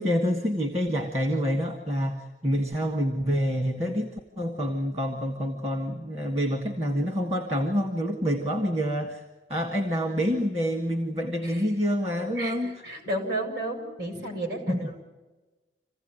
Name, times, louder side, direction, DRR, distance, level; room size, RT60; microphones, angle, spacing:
voice 1, 0.0-4.1 4.4-9.2 9.5-12.8 14.7-14.9, equal, 35° right, 4 dB, 1.7 m, -27 dB
voice 2, 12.4-15.0, right 1 dB, 65° right, 3 dB, 5.7 m, -33 dB
27.5 x 16.0 x 9.1 m, 1.2 s
head